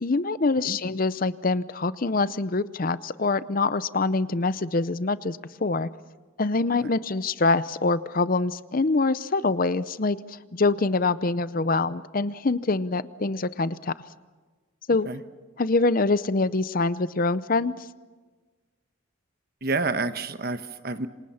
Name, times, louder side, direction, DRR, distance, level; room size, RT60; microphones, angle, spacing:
voice 1, 0.0-5.9 6.4-13.9 14.9-15.1 15.6-17.8, left 3 dB, 40° left, 16 dB, 0.6 m, -25 dB
voice 2, 19.6-21.1, right 3 dB, 45° right, 10 dB, 1.2 m, -29 dB
28.0 x 25.5 x 5.7 m, 1.3 s
head